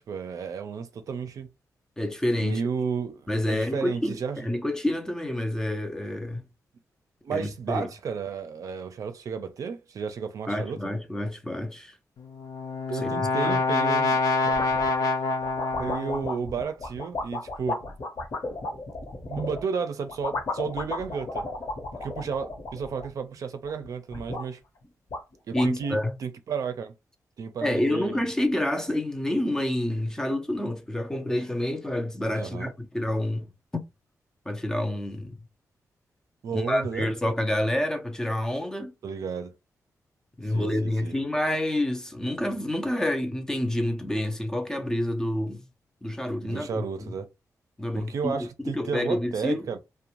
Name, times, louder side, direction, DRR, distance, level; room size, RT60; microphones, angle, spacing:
voice 1, 0.0-1.5 2.4-4.4 7.2-10.8 12.9-14.2 15.7-17.9 19.3-21.4 22.0-24.6 25.5-26.9 27.4-28.3 32.3-32.7 36.4-37.1 39.0-39.5 40.5-41.1 46.4-47.3 47.9-49.8, right 6 dB, 65° right, 0.5 m, -32 dB
voice 2, 2.0-2.6 3.3-6.4 7.3-7.9 10.5-12.0 12.9-13.6 25.5-26.1 27.6-33.5 33.7-33.8 34.5-35.4 36.5-38.9 40.4-45.6 46.0-47.1 47.8-48.5 48.7-49.7, left 1 dB, 10° left, 0.5 m, -28 dB
Brass instrument, 12.2-16.4, left 3 dB, 70° left, 0.5 m, -26 dB
sound 1, 14.4-15.0 15.4-19.6 20.1-23.3 23.6-24.5 24.8-24.9 25.1-25.9, left 2 dB, 50° left, 0.9 m, -34 dB
2.5 x 2.1 x 2.9 m
wide cardioid pair, 140°, 6 cm